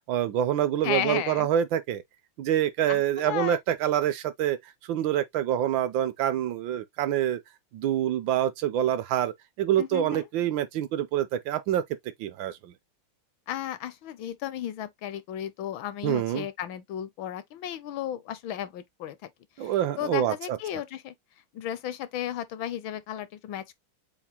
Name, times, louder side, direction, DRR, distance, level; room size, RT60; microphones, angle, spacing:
voice 1, 0.1-2.0 2.4-4.6 4.8-7.4 7.7-11.8 12.2-12.7 16.0-16.5 19.6-20.6, right 11 dB, 75° right, 1.2 m, -26 dB
voice 2, 0.8-1.5 2.9-3.6 9.8-10.3 13.5-19.3 19.6-21.1 21.5-23.7, left 11 dB, 75° left, 1.4 m, -34 dB
7.2 x 2.4 x 2.8 m
omnidirectional pair, 2.3 m